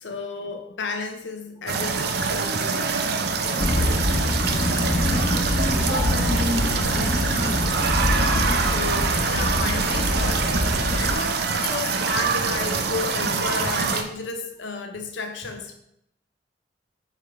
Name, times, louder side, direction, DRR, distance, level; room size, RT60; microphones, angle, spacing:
voice 1, 0.0-2.8 3.4-3.6 8.1-15.7, left 4 dB, 80° left, 4 dB, 0.6 m, -33 dB
sound 1, 1.7-14.0, right 5 dB, 60° right, 0.6 m, -25 dB
sound 2, 3.6-11.2, left 1 dB, 40° left, 1.1 m, -25 dB
sound 3, 4.1-7.8, right 2 dB, 85° right, 1.3 m, -36 dB
voice 2, 5.0-6.7 6.9-7.7, left 1 dB, 10° left, -5 dB, 1.4 m, -31 dB
7.5 x 3.6 x 3.5 m, 0.75 s
head